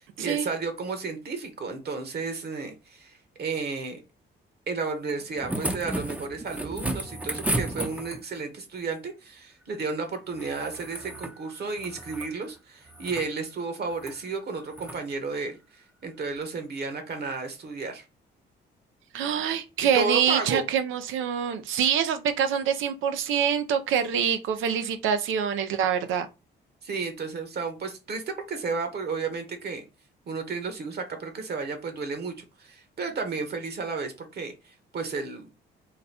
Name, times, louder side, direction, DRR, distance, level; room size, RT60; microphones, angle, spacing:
voice 1, 0.0-4.0 4.7-15.6 16.0-18.0 19.9-20.6 26.8-29.8 30.3-35.5, right 4 dB, 55° right, 1.2 m, -32 dB
sound 1, 5.1-8.4 10.3-11.4 11.7-12.3 12.9-13.3 13.9-14.2 14.7-15.0 16.4-16.5, right 1 dB, 5° right, 0.6 m, -33 dB
voice 2, 19.1-26.3, right 8 dB, 80° right, 0.6 m, -25 dB
4.0 x 2.2 x 4.1 m
cardioid pair, 90°, 20 cm